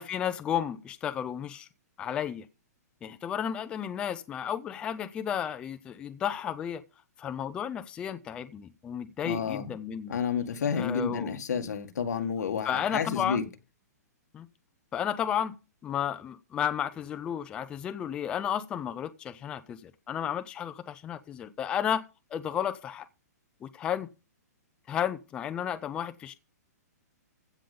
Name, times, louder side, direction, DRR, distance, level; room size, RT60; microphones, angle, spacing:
voice 1, 0.0-1.7 2.0-2.5 3.0-6.8 7.2-10.2 10.7-11.3 12.6-13.5 14.3-14.5 14.9-15.5 15.8-22.0 22.3-23.1 23.6-24.1 24.9-26.3, left 9 dB, 10° left, 0.5 m, -32 dB
voice 2, 9.2-9.7 10.1-13.5, left 6 dB, 75° left, 1.9 m, -30 dB
15.5 x 5.3 x 6.8 m
hypercardioid pair, 170°, 9 cm